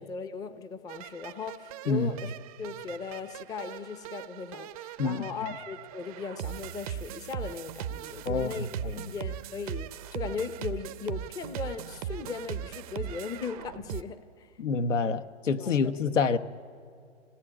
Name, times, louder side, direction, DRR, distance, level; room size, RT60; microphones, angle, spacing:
voice 1, 0.0-2.3 2.6-8.7 9.0-14.5 15.6-15.9, left 5 dB, 10° left, 0.6 m, -38 dB
sound 1, 0.9-14.0, right 11 dB, 30° right, 0.6 m, -39 dB
voice 2, 8.2-9.1 14.6-16.4, left 4 dB, 80° left, 1.2 m, -27 dB
25.5 x 17.5 x 9.9 m
hypercardioid pair, 130°, 37 cm